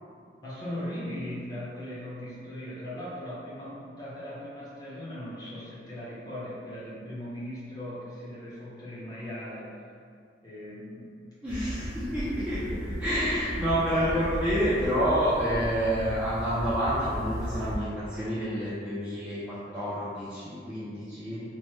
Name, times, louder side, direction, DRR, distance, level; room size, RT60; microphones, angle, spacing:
voice 1, 0.4-9.7 10.4-11.1, left 1 dB, 20° left, -9 dB, 0.9 m, -38 dB
voice 2, 11.4-21.4, equal, 5° right, -12 dB, 0.4 m, -28 dB
sound 1, 11.5-17.8, equal, 75° right, 0.7 m, -35 dB
3.1 x 2.1 x 3.1 m, 2.2 s
head